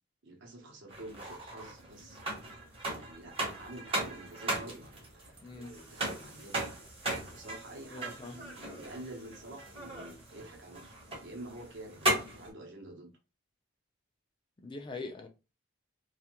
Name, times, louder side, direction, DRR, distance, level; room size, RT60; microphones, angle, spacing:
voice 1, 0.2-2.2 2.9-6.6 7.3-13.1, right 1 dB, 60° right, 0.8 m, -48 dB
sound 1, 0.9-12.5, right 1 dB, 25° right, 0.8 m, -37 dB
voice 2, 5.4-5.7 7.9-8.4 14.6-15.3, left 3 dB, 25° left, 0.4 m, -42 dB
2.6 x 2.4 x 2.8 m
head